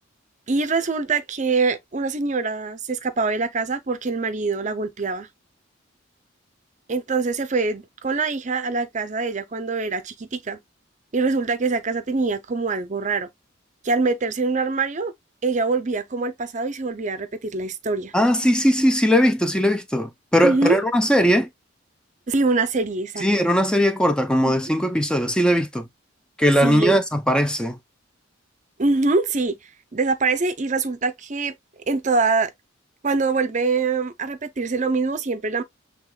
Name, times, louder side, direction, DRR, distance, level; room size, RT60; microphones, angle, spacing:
voice 1, 0.5-5.3 6.9-10.6 11.1-13.3 13.8-15.1 15.4-18.1 20.4-20.8 22.3-23.2 26.6-26.9 28.8-29.6 29.9-31.5 31.9-32.5 33.0-35.6, right 3 dB, 40° right, 0.6 m, -24 dB
voice 2, 18.1-21.5 23.2-25.9 26.4-27.8, equal, 5° left, 0.5 m, -19 dB
6.5 x 3.5 x 2.3 m
head